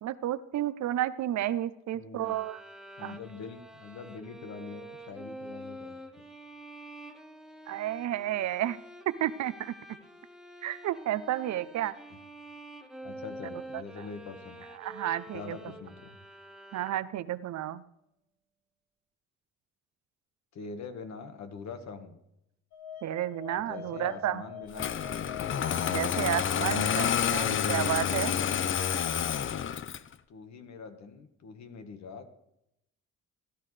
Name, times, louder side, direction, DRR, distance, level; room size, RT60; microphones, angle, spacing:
voice 1, 0.0-2.6 3.0-3.2 7.7-8.8 9.1-9.7 10.6-11.9 14.0-14.1 14.8-15.6 16.7-17.8 23.0-24.4 25.9-28.3, right 13 dB, 65° right, 16 dB, 0.6 m, -31 dB
voice 2, 1.9-2.4 3.0-6.2 12.1-12.2 13.0-14.7 15.3-16.2 20.5-22.2 23.6-25.3 30.3-32.3, left 5 dB, 65° left, 7 dB, 1.6 m, -44 dB
sound 1, 2.2-17.4, right 1 dB, ahead, 1.0 m, -47 dB
sound 2, 22.7-27.8, left 8 dB, 85° left, 1.8 m, -45 dB
Engine starting, 24.7-30.1, left 8 dB, 40° left, 0.6 m, -29 dB
16.5 x 11.5 x 3.3 m, 0.81 s
cardioid pair, 90°, 30 cm